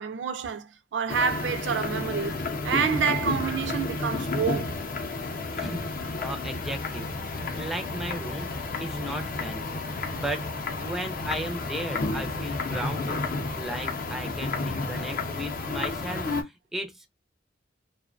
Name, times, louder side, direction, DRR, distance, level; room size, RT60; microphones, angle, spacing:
voice 1, 0.0-2.3 2.6-4.8, right 6 dB, 85° right, 0.4 m, -28 dB
sound 1, 1.1-16.4, left 3 dB, 50° left, 0.5 m, -31 dB
voice 2, 5.5-7.1 7.5-8.5 8.8-10.5 10.8-13.3 13.6-17.1, right 1 dB, ahead, 0.4 m, -35 dB
2.5 x 2.1 x 2.4 m
head